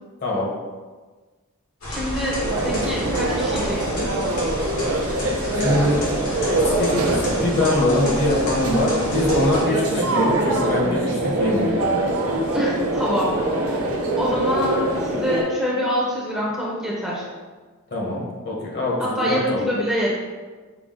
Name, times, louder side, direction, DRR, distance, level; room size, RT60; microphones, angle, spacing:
sound 1, 1.8-9.6, equal, 70° left, 1.5 m, -31 dB
voice 1, 1.9-4.1 12.5-13.9 14.1-17.2 19.0-20.2, equal, 5° right, -6 dB, 0.8 m, -25 dB
sound 2, 2.4-15.4, right 1 dB, 70° right, 0.7 m, -23 dB
voice 2, 5.5-11.8 17.9-19.6, left 1 dB, 50° left, -3 dB, 1.2 m, -23 dB
6.1 x 2.3 x 3.8 m, 1.4 s
head